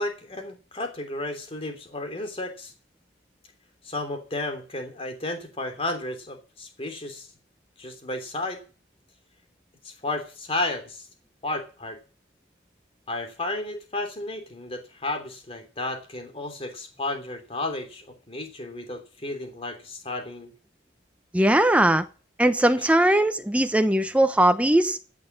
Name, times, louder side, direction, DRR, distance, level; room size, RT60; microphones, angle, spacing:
voice 1, 0.0-2.7 3.8-7.3 7.8-8.6 9.8-11.1 11.4-12.0 13.1-20.5, left 2 dB, 30° left, 3.1 m, -33 dB
voice 2, 21.3-22.0 22.4-25.0, right 1 dB, 5° right, 0.9 m, -20 dB
15.5 x 6.7 x 7.3 m
head